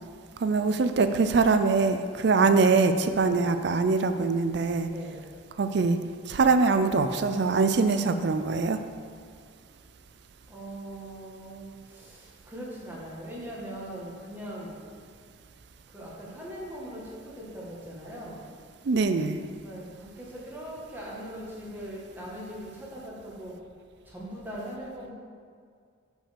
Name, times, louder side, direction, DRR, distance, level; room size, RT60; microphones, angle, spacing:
voice 1, 0.4-4.9 5.6-6.0 6.3-8.8 18.9-19.4, right 4 dB, 60° right, 9 dB, 0.4 m, -23 dB
voice 2, 3.1-3.4 4.8-5.3 10.5-14.8 15.9-18.4 19.6-23.6 24.0-25.1, right 1 dB, 10° right, -6 dB, 1.8 m, -40 dB
6.0 x 5.5 x 6.6 m, 2.1 s
head